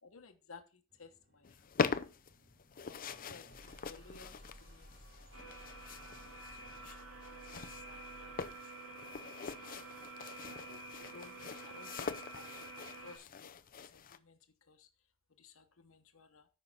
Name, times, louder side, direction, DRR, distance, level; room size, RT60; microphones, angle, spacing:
voice 1, 0.0-1.9 2.8-4.3 4.6-7.4 7.7-8.6 10.9-14.9 15.4-16.5, left 4 dB, 70° left, 1.1 m, -58 dB
sound 1, 0.9-8.7, equal, 55° right, 3.3 m, -59 dB
sound 2, 1.4-14.2, left 5 dB, 40° left, 0.6 m, -43 dB
sound 3, 5.3-13.2, right 2 dB, 70° right, 3.2 m, -49 dB
13.5 x 5.6 x 4.2 m
head